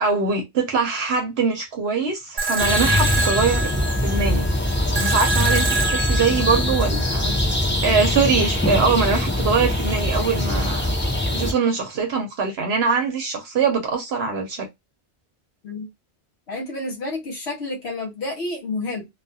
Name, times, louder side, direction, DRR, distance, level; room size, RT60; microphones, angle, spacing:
voice 1, 0.0-3.7 4.0-4.5 5.0-7.3 7.8-10.9 11.3-14.7, right 5 dB, 70° right, 0.9 m, -22 dB
sound 1, 2.4-7.4, right 3 dB, 40° right, 0.7 m, -26 dB
sound 2, 2.6-11.5, left 1 dB, 15° left, 0.5 m, -22 dB
voice 2, 16.5-19.1, left 2 dB, 70° left, 1.1 m, -30 dB
2.3 x 2.3 x 2.6 m
omnidirectional pair, 1.2 m